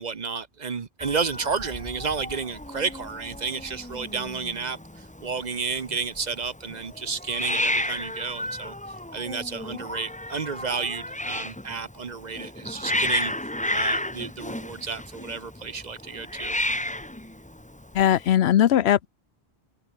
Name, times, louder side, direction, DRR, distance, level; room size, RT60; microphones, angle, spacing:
voice 1, 0.0-8.7 9.1-13.3 13.7-16.5, right 5 dB, 45° right, 1.0 m, -31 dB
Hiss, 1.0-18.3, left 1 dB, 10° left, 1.0 m, -32 dB
voice 2, 17.9-19.1, left 11 dB, 85° left, 0.9 m, -19 dB
omnidirectional pair, 1.1 m